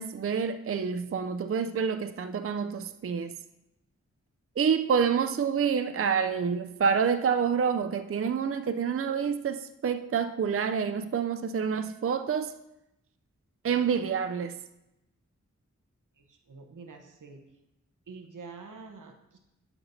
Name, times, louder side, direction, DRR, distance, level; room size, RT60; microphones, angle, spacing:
voice 1, 0.0-3.3 4.6-12.5 13.6-14.6, right 6 dB, 45° right, 0.4 m, -28 dB
voice 2, 16.2-17.4 18.1-19.4, right 4 dB, 90° right, 1.0 m, -47 dB
12.0 x 6.0 x 2.7 m
cardioid pair, 45°, 30 cm